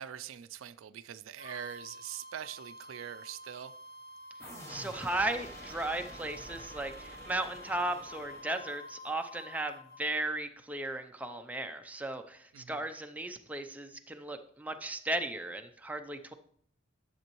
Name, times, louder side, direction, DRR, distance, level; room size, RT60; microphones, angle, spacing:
voice 1, 0.0-3.7 12.5-12.8, right 10 dB, 80° right, 0.4 m, -43 dB
sound 1, 1.4-10.0, equal, 45° left, 0.8 m, -49 dB
sound 2, 4.4-9.1, equal, 15° left, 0.8 m, -49 dB
voice 2, 4.7-16.3, right 1 dB, 5° right, 0.4 m, -36 dB
10.5 x 6.9 x 3.0 m
head